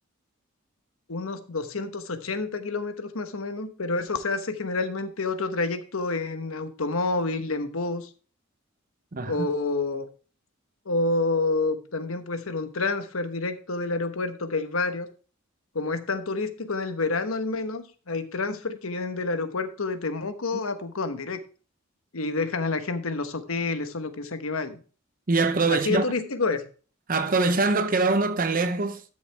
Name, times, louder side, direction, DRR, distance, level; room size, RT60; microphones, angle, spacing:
voice 1, 1.1-8.1 9.3-10.1 10.9-15.1 15.7-21.4 22.1-24.8 25.7-26.6, left 3 dB, 85° left, 1.1 m, -28 dB
voice 2, 9.1-9.5 20.5-20.6 25.3-26.0 27.1-29.0, right 3 dB, 40° right, 0.8 m, -23 dB
13.0 x 6.5 x 3.4 m
head